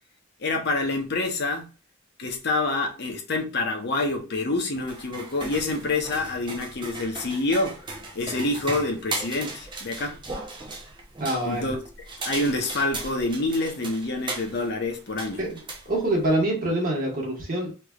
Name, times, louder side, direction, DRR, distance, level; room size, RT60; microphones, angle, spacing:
voice 1, 0.4-1.7 2.2-7.8 8.1-10.2 11.4-15.4, left 2 dB, 50° left, 0.8 m, -27 dB
sound 1, 4.8-16.4, right 3 dB, 20° right, 0.6 m, -37 dB
voice 2, 11.2-11.7 15.4-17.7, right 1 dB, 40° right, 1.4 m, -26 dB
3.3 x 3.1 x 2.3 m
head